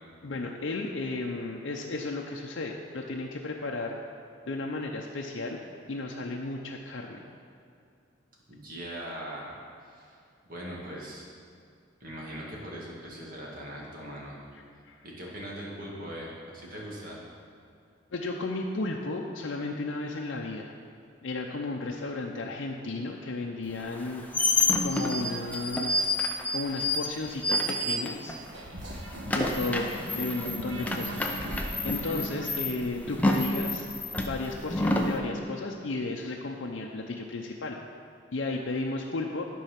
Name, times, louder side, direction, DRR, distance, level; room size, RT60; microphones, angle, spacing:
voice 1, 0.2-4.0 4.4-5.6 5.9-7.2 14.9-15.0 18.1-20.7 21.2-24.2 24.8-26.1 26.5-28.4 29.2-31.3 31.8-33.9 34.2-37.8 38.3-39.4, left 2 dB, 80° left, 0 dB, 0.6 m, -34 dB
voice 2, 8.5-9.5 9.9-10.2 10.5-11.3 12.0-14.4 15.0-17.2, equal, 45° right, -4 dB, 2.1 m, -40 dB
sound 1, 23.9-28.5 28.8-35.2, left 2 dB, 10° left, 0.6 m, -29 dB
sound 2, 28.3-33.2, equal, 75° right, 1.3 m, -39 dB
12.5 x 4.7 x 5.8 m, 2.4 s
head